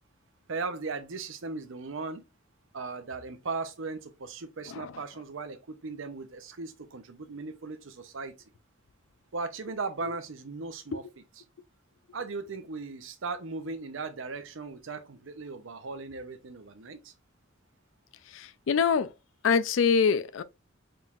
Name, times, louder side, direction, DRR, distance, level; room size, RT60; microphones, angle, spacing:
voice 1, 0.5-2.2 2.7-8.3 9.3-11.0 12.1-17.1, right 4 dB, 75° right, 0.7 m, -37 dB
voice 2, 4.7-5.0 10.1-10.2 18.3-19.1 19.4-20.4, left 6 dB, 70° left, 0.4 m, -25 dB
4.3 x 3.7 x 2.4 m
head